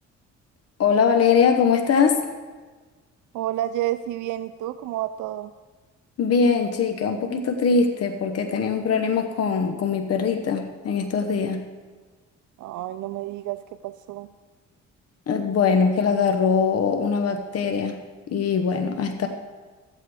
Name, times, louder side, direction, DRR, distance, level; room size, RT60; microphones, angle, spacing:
voice 1, 0.8-2.2 6.2-11.7 15.3-19.3, left 5 dB, 55° left, 6 dB, 1.0 m, -22 dB
voice 2, 3.3-5.5 12.6-14.3, right 13 dB, 80° right, 12 dB, 0.5 m, -30 dB
13.5 x 8.4 x 4.9 m, 1.4 s
cardioid pair, 90°, 30 cm